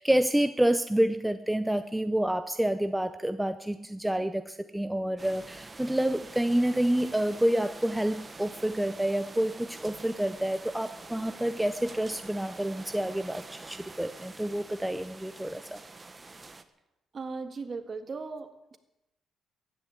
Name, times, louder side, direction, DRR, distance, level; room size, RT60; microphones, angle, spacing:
voice 1, 0.0-15.8, right 1 dB, 5° right, 10 dB, 0.7 m, -28 dB
sound 1, 5.2-16.6, right 3 dB, 25° right, 1.2 m, -46 dB
voice 2, 17.1-18.8, right 4 dB, 40° right, 8 dB, 1.8 m, -38 dB
15.0 x 10.5 x 8.8 m, 0.93 s
cardioid pair, 90°, 0 cm